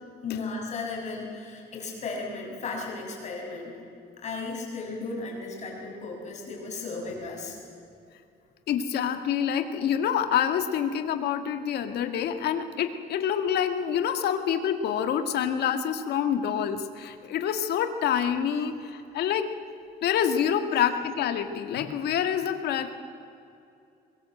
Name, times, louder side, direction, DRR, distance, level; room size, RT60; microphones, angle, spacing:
voice 1, 0.2-3.8 4.2-7.6, left 3 dB, 40° left, -1 dB, 6.6 m, -35 dB
voice 2, 8.7-19.5 20.0-22.9, left 8 dB, 65° left, 7 dB, 1.9 m, -27 dB
23.0 x 22.0 x 7.9 m, 2.6 s
cardioid pair, 155°, 18 cm